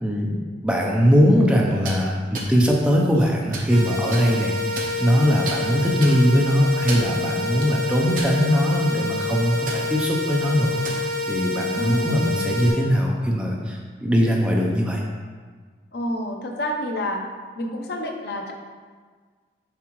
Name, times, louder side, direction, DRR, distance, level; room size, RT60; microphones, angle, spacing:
voice 1, 0.0-10.8 11.3-15.0, equal, 5° right, -2 dB, 0.6 m, -21 dB
sound 1, 1.7-2.0 2.3-2.5 3.1-3.7 4.1-4.2 4.8-5.2 5.5-5.6 6.0-6.2 6.7-7.1 7.6-7.7 8.2-8.7 9.0-9.2 9.7-9.8 10.6-11.0, right 3 dB, 50° right, 1.0 m, -32 dB
sound 2, 3.7-12.7, left 2 dB, 80° right, 1.5 m, -28 dB
voice 2, 11.7-12.1 15.9-17.2 17.6-18.5, equal, 65° left, 2 dB, 0.7 m, -28 dB
7.3 x 4.8 x 3.1 m, 1.5 s
head